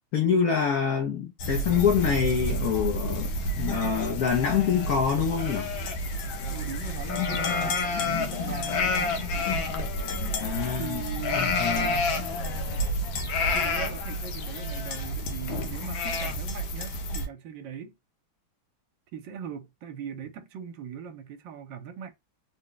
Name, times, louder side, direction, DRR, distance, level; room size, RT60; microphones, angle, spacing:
voice 1, 0.1-5.7 10.4-11.0 11.3-12.0, left 7 dB, 60° left, 1.0 m, -26 dB
sound 1, 1.4-17.3, left 2 dB, 80° left, 1.6 m, -29 dB
voice 2, 6.5-9.6 10.7-11.6 13.5-18.0 19.1-22.1, right 8 dB, 75° right, 1.3 m, -40 dB
3.7 x 2.2 x 3.7 m
omnidirectional pair, 2.1 m